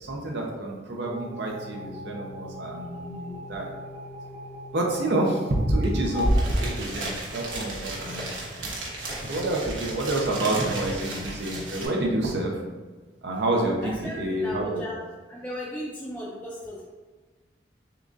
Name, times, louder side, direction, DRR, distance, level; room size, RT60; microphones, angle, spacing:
voice 1, 0.0-3.7 4.7-8.3 8.6-8.7 9.3-12.5 13.2-14.8, right 1 dB, 65° right, 0 dB, 0.7 m, -28 dB
sound 1, 1.0-7.5, left 1 dB, 35° right, 1.3 m, -39 dB
sound 2, 5.8-5.9 6.1-11.9, right 1 dB, 85° right, 1.1 m, -31 dB
voice 2, 13.8-16.9, equal, 10° left, -5 dB, 0.5 m, -36 dB
6.7 x 2.4 x 2.6 m, 1.3 s
head